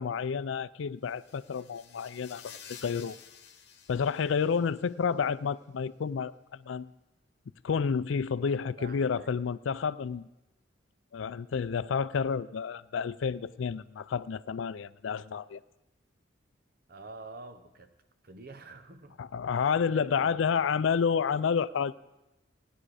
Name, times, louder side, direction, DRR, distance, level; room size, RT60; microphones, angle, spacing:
voice 1, 0.0-3.2 3.9-6.9 7.6-10.3 11.1-15.6 19.2-21.9, left 6 dB, 80° left, 17 dB, 0.4 m, -30 dB
sound 1, 1.1-4.9, left 8 dB, 60° left, 1.1 m, -51 dB
voice 2, 8.8-9.3 16.9-17.9 18.2-19.2 19.6-20.7, right 3 dB, 55° right, 9 dB, 0.9 m, -47 dB
16.0 x 10.0 x 4.9 m, 0.98 s
head